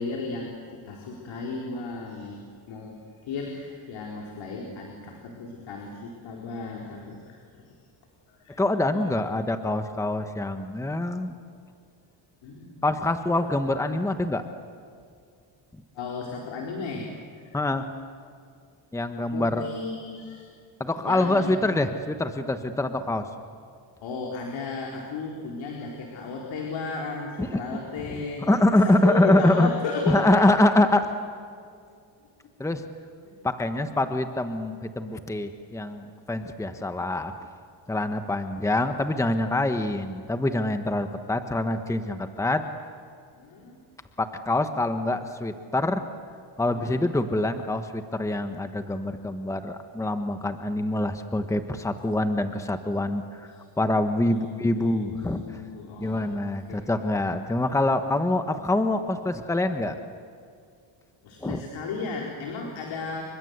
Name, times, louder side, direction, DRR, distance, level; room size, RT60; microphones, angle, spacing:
voice 1, 0.0-2.4 2.7-7.8 8.3-8.6 12.4-13.1 13.7-13.8 14.1-14.2 15.9-17.1 17.3-17.7 19.3-20.5 21.0-21.8 24.0-30.7 33.2-33.3 34.0-34.1 43.4-43.8 46.6-47.1 54.3-56.3 56.7-56.9 61.2-63.2, left 4 dB, 70° left, 0 dB, 4.3 m, -34 dB
voice 2, 8.6-11.3 12.8-14.4 17.5-17.8 18.9-19.7 20.8-23.3 27.4-27.6 28.5-29.7 30.1-31.0 32.6-32.8 33.4-37.3 37.9-42.6 44.2-46.0 46.6-53.5 53.8-55.4 56.0-60.0 61.4-61.6, left 1 dB, 5° left, 8 dB, 1.3 m, -25 dB
29.5 x 24.5 x 8.1 m, 2.3 s
cardioid pair, 115°, 47 cm